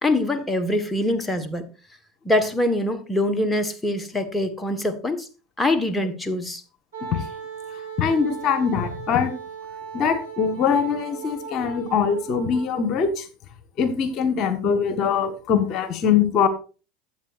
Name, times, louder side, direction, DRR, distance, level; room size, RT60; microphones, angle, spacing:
voice 1, 0.0-1.7 2.2-5.3 5.6-6.6, left 1 dB, 10° left, 1.5 m, -24 dB
Wind instrument woodwind instrument, 6.9-12.9, right 6 dB, 85° right, 4.6 m, -37 dB
voice 2, 8.0-9.3 9.9-13.3 13.8-16.5, left 6 dB, 50° left, 1.4 m, -22 dB
12.5 x 8.1 x 2.5 m
hypercardioid pair, 85°, 0 cm